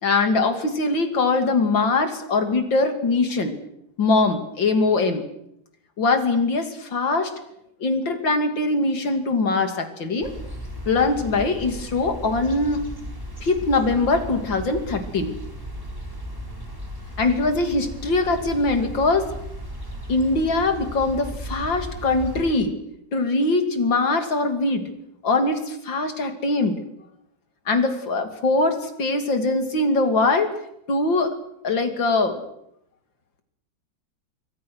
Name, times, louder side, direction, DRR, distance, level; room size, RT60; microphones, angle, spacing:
voice 1, 0.0-3.5 4.0-5.2 6.0-7.3 7.8-10.3 10.9-12.8 13.4-15.3 17.2-19.3 20.1-22.8 23.1-24.8 25.2-26.8 27.7-30.5 30.9-31.3 31.6-32.4, left 3 dB, 75° left, 7 dB, 3.5 m, -22 dB
sound 1, 10.2-22.5, equal, 10° right, 5.0 m, -36 dB
26.5 x 25.0 x 6.3 m, 0.79 s
omnidirectional pair, 2.1 m